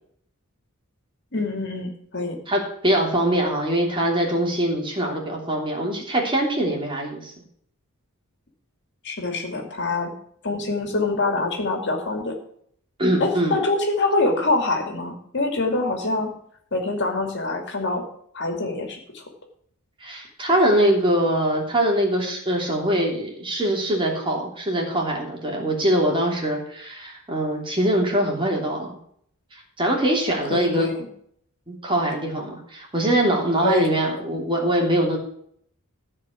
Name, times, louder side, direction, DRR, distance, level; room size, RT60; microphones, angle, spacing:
voice 1, 1.3-2.4 9.0-10.1 10.4-12.4 13.2-16.3 16.7-18.1 18.3-19.2 30.5-31.1 33.6-33.9, left 2 dB, 55° left, 3 dB, 2.5 m, -25 dB
voice 2, 2.5-7.3 13.0-13.6 20.0-28.9 29.8-30.9 31.7-35.2, right 1 dB, 25° right, -1 dB, 3.1 m, -23 dB
14.5 x 4.9 x 8.3 m, 0.66 s
head